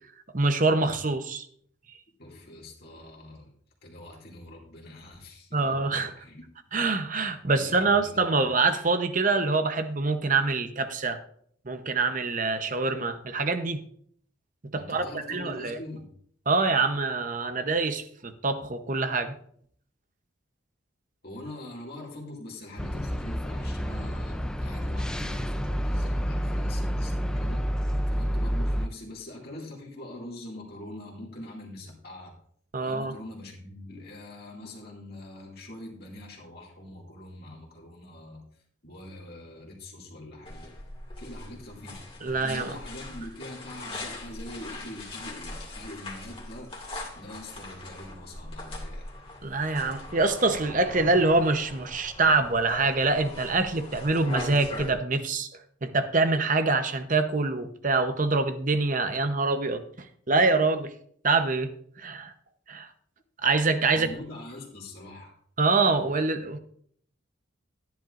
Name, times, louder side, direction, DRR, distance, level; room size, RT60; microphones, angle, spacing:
voice 1, 0.3-1.5 5.5-6.1 6.7-11.2 11.7-13.8 14.7-15.8 16.5-19.3 32.7-33.1 42.2-42.7 49.4-55.5 55.8-60.9 61.2-61.7 62.0-62.3 62.7-62.9 63.4-64.1 65.6-66.6, right 3 dB, 40° right, 9 dB, 0.9 m, -25 dB
voice 2, 2.2-3.5 3.8-6.4 7.5-8.5 14.8-16.1 21.2-27.6 28.1-32.3 32.8-38.4 38.8-40.7 41.2-42.0 42.3-46.7 47.1-49.1 63.9-65.4, left 1 dB, 50° left, -2 dB, 2.4 m, -43 dB
sound 1, 22.8-28.9, equal, 5° left, 0.5 m, -29 dB
sound 2, 40.4-54.9, left 2 dB, 25° left, 2.2 m, -41 dB
13.5 x 10.5 x 2.5 m, 0.63 s
head